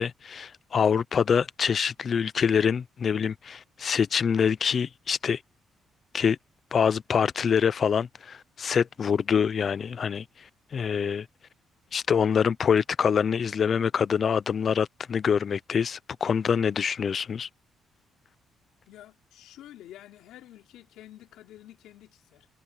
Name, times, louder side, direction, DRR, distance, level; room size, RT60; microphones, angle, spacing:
voice 1, 0.0-5.4 6.1-6.4 6.7-10.2 10.7-11.3 11.9-17.5, left 7 dB, 50° left, 0.7 m, -25 dB
voice 2, 18.9-22.5, left 13 dB, 90° left, 3.7 m, -49 dB
cardioid pair, 90°, 0 cm